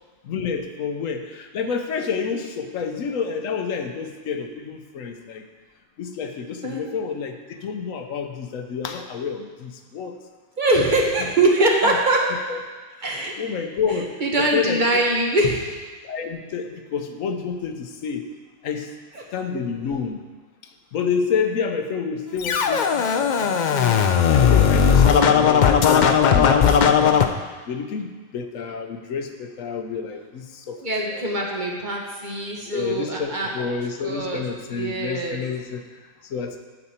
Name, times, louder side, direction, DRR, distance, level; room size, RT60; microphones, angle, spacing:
voice 1, 0.2-5.4 6.0-10.1 10.9-11.0 12.3-12.6 13.4-15.0 16.0-18.3 18.6-18.9 19.3-20.2 20.9-24.0 24.3-26.5 26.8-27.2 27.7-30.8 31.1-31.5 32.7-35.8 36.3-36.6, left 6 dB, 85° left, 6 dB, 1.1 m, -29 dB
voice 2, 10.6-12.3 13.0-13.4 13.9-15.8 19.1-19.2 30.8-33.7 34.0-34.4 34.7-35.4, right 2 dB, 40° right, -1 dB, 1.2 m, -23 dB
Scratching (performance technique), 22.4-27.3, left 7 dB, 60° left, 0.5 m, -17 dB
8.7 x 8.1 x 4.3 m, 1.3 s
omnidirectional pair, 1.3 m